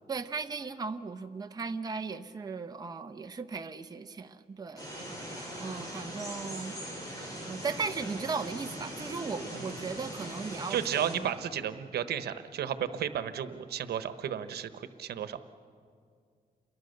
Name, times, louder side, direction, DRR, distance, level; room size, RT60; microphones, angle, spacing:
voice 1, 0.1-4.9 5.6-6.8 7.5-11.3, right 4 dB, 25° right, 6 dB, 0.8 m, -37 dB
sound 1, 4.8-11.1, equal, 20° left, 7.2 m, -41 dB
voice 2, 10.7-15.4, right 9 dB, 85° right, 11 dB, 1.1 m, -33 dB
29.0 x 22.5 x 6.7 m, 2.2 s
wide cardioid pair, 140°, 16 cm